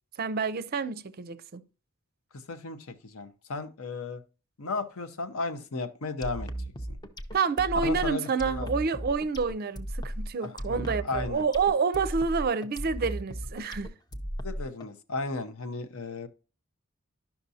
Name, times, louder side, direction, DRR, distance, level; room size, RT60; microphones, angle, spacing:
voice 1, 0.2-1.6 7.3-13.9, right 5 dB, 45° right, 0.4 m, -28 dB
voice 2, 2.3-4.2 4.6-6.5 6.9-7.0 7.8-8.8 10.4-11.5 14.4-16.3, left 3 dB, 75° left, 0.8 m, -35 dB
sound 1, 6.2-14.9, equal, 20° left, 0.5 m, -36 dB
11.5 x 5.8 x 2.7 m
head